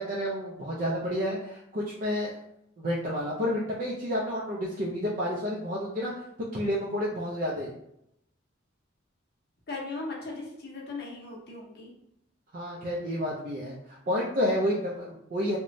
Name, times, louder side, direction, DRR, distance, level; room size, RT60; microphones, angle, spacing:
voice 1, 0.0-2.3 2.8-6.2 6.5-7.7 12.5-15.6, equal, 45° right, -5 dB, 0.4 m, -30 dB
voice 2, 9.7-11.9, left 3 dB, 55° left, -1 dB, 0.7 m, -38 dB
2.9 x 2.1 x 2.6 m, 0.77 s
head